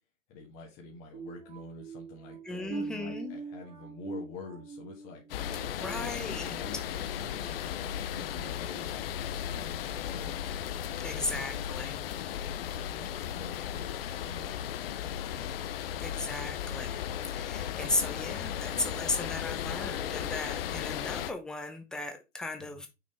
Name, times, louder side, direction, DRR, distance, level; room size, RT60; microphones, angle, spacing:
voice 1, 0.3-5.4 5.7-10.4 10.9-12.1 12.5-14.8 22.6-22.8, left 3 dB, 30° left, -2 dB, 1.7 m, -47 dB
sound 1, 1.1-6.8 7.2-7.5 8.0-8.2, right 4 dB, 15° right, 1.3 m, -43 dB
voice 2, 2.4-3.4 5.8-6.5 11.0-12.0 16.0-22.9, left 2 dB, ahead, 5 dB, 0.6 m, -36 dB
sound 2, 5.3-21.3, left 10 dB, 45° left, 0.8 m, -36 dB
6.4 x 5.1 x 3.3 m, 0.25 s
hypercardioid pair, 125°, 39 cm